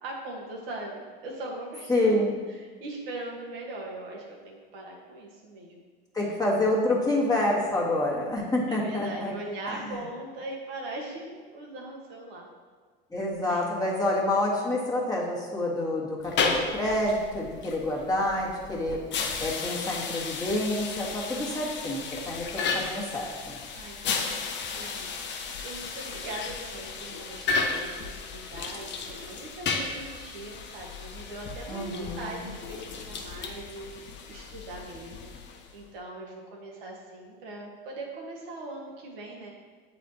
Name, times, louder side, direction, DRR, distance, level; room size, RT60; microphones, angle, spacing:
voice 1, 0.0-5.8 8.7-12.5 13.4-13.7 23.7-35.3 35.7-39.5, right 2 dB, 70° right, -2 dB, 1.4 m, -40 dB
voice 2, 1.9-2.4 6.1-9.3 9.7-10.0 13.1-19.0 19.4-23.6 31.7-32.5, left 1 dB, 10° left, -5 dB, 1.5 m, -28 dB
sound 1, 16.2-35.8, left 4 dB, 35° left, 0.8 m, -34 dB
8.1 x 4.2 x 2.8 m, 1.5 s
hypercardioid pair, 85°, 30 cm